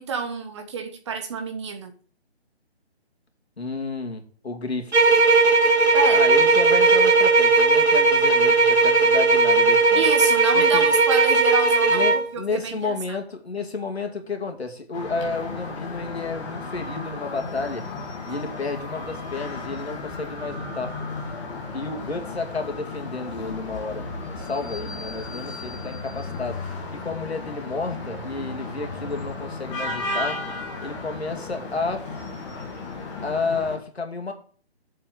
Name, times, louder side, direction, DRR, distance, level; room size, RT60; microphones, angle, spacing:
voice 1, 0.0-1.9 5.9-6.2 9.9-13.2, right 5 dB, 25° right, 1.2 m, -29 dB
voice 2, 3.6-5.1 6.1-10.1 10.5-10.8 11.9-17.9 18.3-21.0 21.7-24.0 24.3-26.7 26.9-30.4 30.8-32.1 33.2-34.3, left 3 dB, 70° left, 2.5 m, -31 dB
sound 1, 4.9-12.3, right 3 dB, 85° right, 2.5 m, -17 dB
sound 2, 14.9-33.8, left 3 dB, 15° left, 1.5 m, -34 dB
7.4 x 6.0 x 6.9 m
figure-of-eight pair, 150°, 32 cm